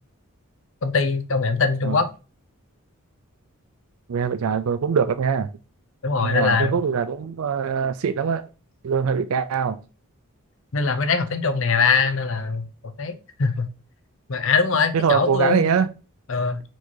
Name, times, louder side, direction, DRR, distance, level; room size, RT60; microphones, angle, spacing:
voice 1, 0.8-2.1 6.0-6.8 10.7-12.7 13.0-13.7 14.3-15.7 16.3-16.6, left 4 dB, 65° left, 0.6 m, -22 dB
voice 2, 4.1-5.5 6.2-8.4 8.8-9.8 14.9-15.9, right 6 dB, 75° right, 0.4 m, -22 dB
4.5 x 4.4 x 2.7 m
head